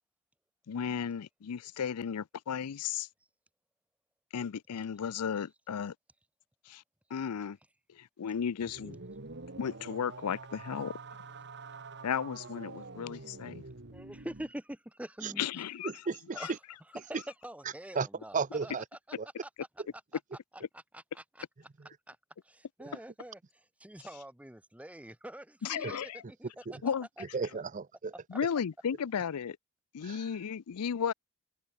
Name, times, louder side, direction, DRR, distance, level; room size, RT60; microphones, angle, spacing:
voice 1, 0.7-3.1 4.3-5.9 6.7-6.8 7.1-7.6 7.9-9.0 9.6-10.9 12.0-13.6 15.4-15.9 16.4-16.5 25.6-26.2 26.8-27.1 28.3-29.6 29.9-31.1, left 7 dB, 85° left, 0.5 m, -34 dB
sound 1, 8.6-14.5, right 3 dB, 50° right, 1.8 m, -46 dB
voice 2, 13.9-15.4 16.3-16.5 17.0-17.2 17.4-18.4 18.6-18.7 20.9-21.4 22.1-22.2 22.4-23.4 23.8-27.2, right 1 dB, 5° right, 1.1 m, -45 dB
voice 3, 15.8-16.6 17.1-17.2 17.6-18.1 18.3-18.9 19.2-19.3 19.8-19.9 21.8-22.0 22.8-22.9 25.8-25.9 26.2-26.3 26.7-26.8 27.2-28.1 30.0-30.4, right 5 dB, 35° right, 0.6 m, -35 dB
head